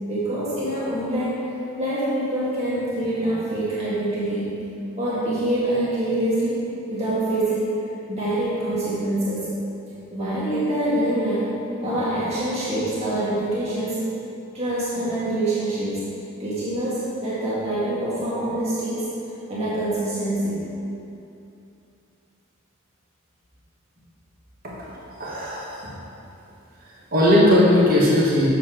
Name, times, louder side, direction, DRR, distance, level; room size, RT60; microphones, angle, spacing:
voice 1, 0.1-1.4 1.8-4.5 5.0-7.7 8.1-9.5 10.1-11.6 11.8-14.0 14.5-16.1 16.4-19.1 19.5-20.6, right 1 dB, 30° right, -10 dB, 1.7 m, -25 dB
voice 2, 25.2-25.9 27.1-28.5, left 1 dB, 45° right, -6 dB, 1.6 m, -18 dB
7.3 x 6.9 x 4.6 m, 2.8 s
head